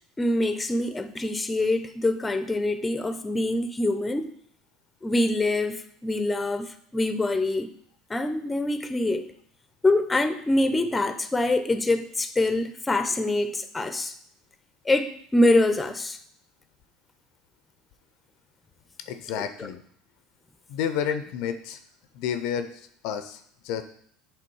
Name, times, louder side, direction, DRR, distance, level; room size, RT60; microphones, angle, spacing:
voice 1, 0.2-4.3 5.0-7.7 8.1-9.3 9.8-14.1 14.8-16.2 19.6-19.7, left 2 dB, 15° left, 10 dB, 0.7 m, -25 dB
voice 2, 19.1-19.8 20.7-21.8 22.1-23.8, left 8 dB, 65° left, 9 dB, 0.5 m, -30 dB
7.5 x 3.5 x 4.6 m, 0.65 s
hypercardioid pair, 80°, 0 cm